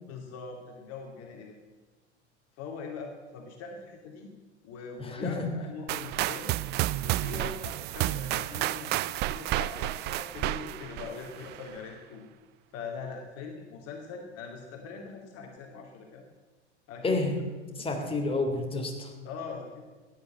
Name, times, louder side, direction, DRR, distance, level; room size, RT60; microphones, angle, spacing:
voice 1, 0.1-1.6 2.6-4.3 4.6-6.6 7.0-12.3 12.7-16.2 16.9-17.3 19.2-19.8, left 5 dB, 45° left, 2 dB, 2.4 m, -42 dB
voice 2, 5.0-5.4 17.0-17.4 17.8-19.1, left 2 dB, 15° left, 2 dB, 3.1 m, -29 dB
sound 1, 5.9-11.7, right 17 dB, 30° right, 0.4 m, -31 dB
15.5 x 10.0 x 7.5 m, 1.3 s
figure-of-eight pair, 85°, 35 cm